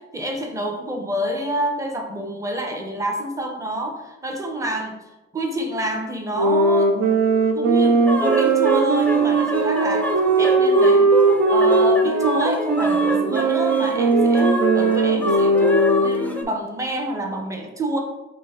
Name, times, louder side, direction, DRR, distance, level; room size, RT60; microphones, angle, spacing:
voice 1, 0.1-5.0 5.3-6.9 7.5-10.1 10.4-11.1 11.5-18.0, right 1 dB, 10° right, 2 dB, 0.8 m, -28 dB
sound 1, 6.3-16.3, right 3 dB, 60° right, 0.6 m, -19 dB
sound 2, 8.1-16.4, equal, 5° left, 0.4 m, -26 dB
3.8 x 2.8 x 4.4 m, 1.0 s
cardioid pair, 90°, 30 cm